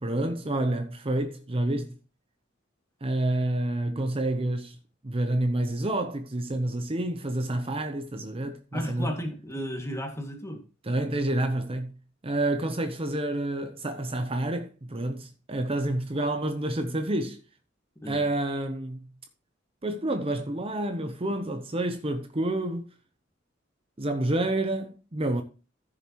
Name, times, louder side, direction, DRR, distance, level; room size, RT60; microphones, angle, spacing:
voice 1, 0.0-1.9 3.0-4.8 5.0-9.2 10.8-11.9 12.2-17.4 18.1-19.0 19.8-22.9 24.0-25.4, right 1 dB, 30° right, 0.8 m, -28 dB
voice 2, 8.7-10.6 18.0-18.3, equal, 15° left, 2.2 m, -34 dB
14.5 x 6.9 x 3.1 m
head